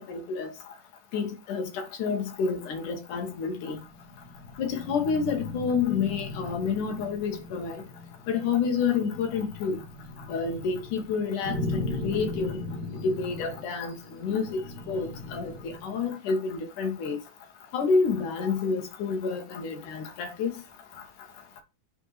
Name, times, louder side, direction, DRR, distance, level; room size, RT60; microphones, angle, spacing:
voice 1, 0.1-0.5 1.1-3.8 4.6-7.8 8.3-9.8 10.3-12.6 13.0-14.6 14.9-17.2 17.7-20.5, left 5 dB, 80° left, 3.2 m, -29 dB
sound 1, 3.5-16.0, left 2 dB, 45° right, 1.7 m, -38 dB
7.8 x 4.5 x 5.8 m
omnidirectional pair, 3.6 m